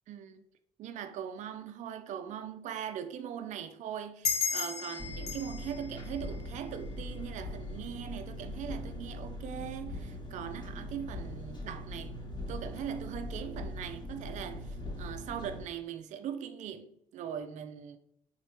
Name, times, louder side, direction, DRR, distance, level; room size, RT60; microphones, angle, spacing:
voice 1, 0.1-0.4 0.8-12.2 12.5-14.6 15.0-18.0, right 9 dB, 40° right, 0.4 m, -40 dB
sound 1, 4.2-7.3, left 6 dB, 85° left, 0.5 m, -36 dB
Engine, 5.0-15.6, left 1 dB, 25° left, 1.0 m, -41 dB
4.1 x 2.9 x 3.0 m
figure-of-eight pair, 45°, 19 cm